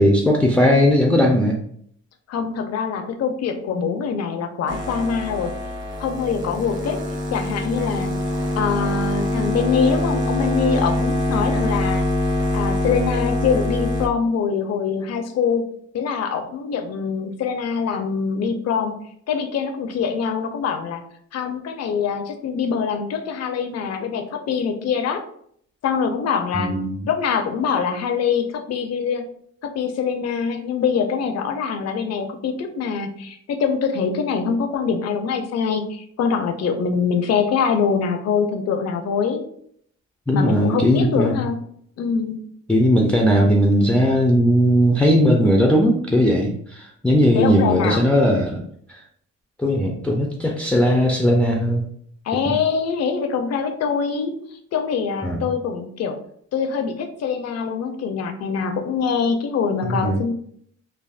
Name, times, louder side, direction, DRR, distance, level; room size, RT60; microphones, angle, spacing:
voice 1, 0.0-1.6 26.5-27.1 40.3-41.5 42.7-48.6 48.9-49.0 49.6-51.8 52.5-52.6 55.2-55.4 59.9-60.2, equal, 5° left, -1 dB, 0.3 m, -18 dB
voice 2, 2.3-5.6 6.0-7.0 7.3-8.2 8.6-12.1 12.5-15.6 15.9-18.9 19.3-21.0 21.3-25.2 25.8-26.7 27.1-29.2 29.6-39.4 40.3-41.6 42.0-42.4 47.3-48.0 52.3-54.3 54.7-56.2 56.5-60.3, left 6 dB, 55° left, 6 dB, 0.5 m, -24 dB
sound 1, 4.7-14.1, left 1 dB, 40° right, 0.8 m, -24 dB
3.4 x 2.0 x 2.4 m, 0.66 s
cardioid pair, 90°, 30 cm